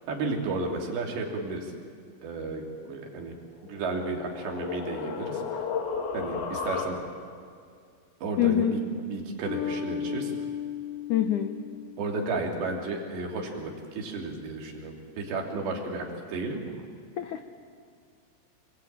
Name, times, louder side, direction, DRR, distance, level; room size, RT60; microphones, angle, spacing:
voice 1, 0.1-1.7 2.2-3.4 3.6-5.6 6.1-7.0 8.2-10.3 12.0-16.7, right 3 dB, 75° right, 1 dB, 5.2 m, -33 dB
sound 1, 3.6-7.4, left 5 dB, 65° left, 3.6 m, -34 dB
voice 2, 8.4-8.7 11.1-11.6 17.2-17.4, left 10 dB, 80° left, 6 dB, 1.8 m, -24 dB
Bass guitar, 9.5-12.5, left 8 dB, 30° left, 2.6 m, -35 dB
27.0 x 21.5 x 8.9 m, 2.2 s
omnidirectional pair, 5.1 m